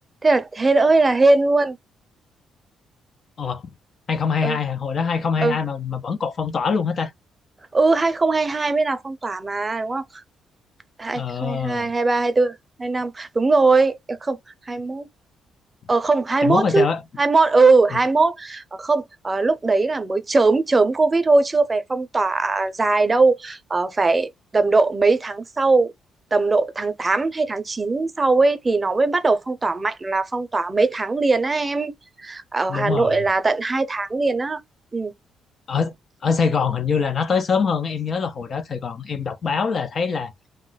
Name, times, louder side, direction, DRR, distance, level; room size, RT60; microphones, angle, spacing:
voice 1, 0.2-1.8 4.4-4.6 5.4-5.6 7.7-10.0 11.0-14.4 14.7-15.1 15.9-16.9 17.2-25.9 26.3-34.6 34.9-35.1, right 3 dB, 25° right, 0.5 m, -20 dB
voice 2, 4.1-7.1 11.1-11.9 16.4-17.0 17.9-18.0 32.7-33.3 35.7-35.9 36.2-40.3, left 5 dB, 50° left, 0.5 m, -24 dB
2.3 x 2.0 x 3.8 m
cardioid pair, 90°, 0 cm